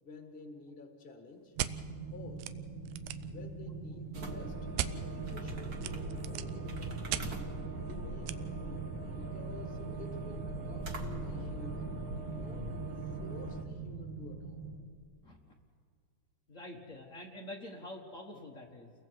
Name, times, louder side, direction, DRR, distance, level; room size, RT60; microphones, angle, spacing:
voice 1, 0.0-1.6 2.1-2.5 3.2-4.6 5.0-8.4 9.2-12.8 13.0-14.6, left 4 dB, 35° left, 4 dB, 0.9 m, -51 dB
sound 1, 1.5-14.8, right 4 dB, 60° right, 2.8 m, -43 dB
sound 2, 1.6-1.7 2.4-2.5 2.8-3.3 4.8-4.9 5.8-6.6 7.1-7.3 8.3-8.4, right 13 dB, 85° right, 2.4 m, -35 dB
sound 3, 4.1-13.6, right 2 dB, 40° right, 1.4 m, -41 dB
voice 2, 15.2-15.5 16.5-18.9, left 1 dB, 65° left, -1 dB, 0.7 m, -46 dB
30.0 x 22.5 x 4.7 m, 2.1 s
omnidirectional pair, 4.0 m